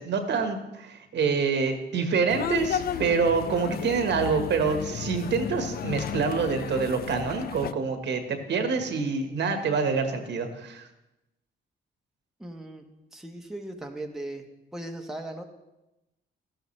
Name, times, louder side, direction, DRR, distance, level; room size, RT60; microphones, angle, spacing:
voice 1, 0.0-10.8, right 5 dB, 60° right, 6 dB, 1.5 m, -26 dB
sound 1, 2.3-7.7, left 8 dB, 50° left, 0.4 m, -33 dB
voice 2, 12.4-12.8 13.1-14.5 14.7-15.4, right 1 dB, ahead, 2 dB, 1.2 m, -38 dB
12.5 x 11.5 x 3.3 m, 0.94 s
cardioid pair, 90°, 20 cm